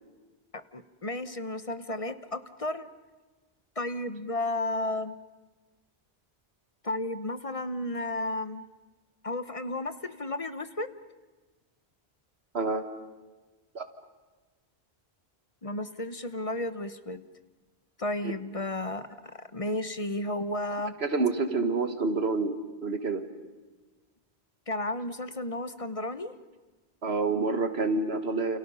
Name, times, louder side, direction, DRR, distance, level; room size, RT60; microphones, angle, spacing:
voice 1, 0.5-2.9 3.8-5.2 6.8-8.7 9.2-10.9 15.6-17.2 18.0-20.9 24.7-26.3, left 1 dB, 35° left, 11 dB, 1.0 m, -33 dB
voice 2, 21.0-22.5 22.8-23.2 27.0-28.6, right 3 dB, 85° right, 9 dB, 2.0 m, -27 dB
29.5 x 29.0 x 5.6 m, 1.3 s
omnidirectional pair, 1.0 m